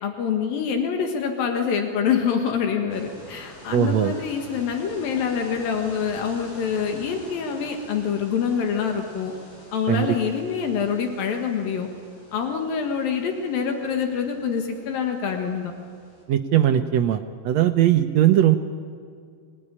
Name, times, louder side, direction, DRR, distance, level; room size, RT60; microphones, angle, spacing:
voice 1, 0.0-9.3 9.7-11.9 12.3-15.7, left 7 dB, 80° left, 3 dB, 3.4 m, -26 dB
sound 1, 2.9-16.2, left 1 dB, 65° left, 7.2 m, -47 dB
voice 2, 3.7-4.1 9.9-10.1 16.3-18.6, right 11 dB, 75° right, 7 dB, 1.6 m, -19 dB
24.0 x 19.0 x 9.9 m, 2.2 s
omnidirectional pair, 4.0 m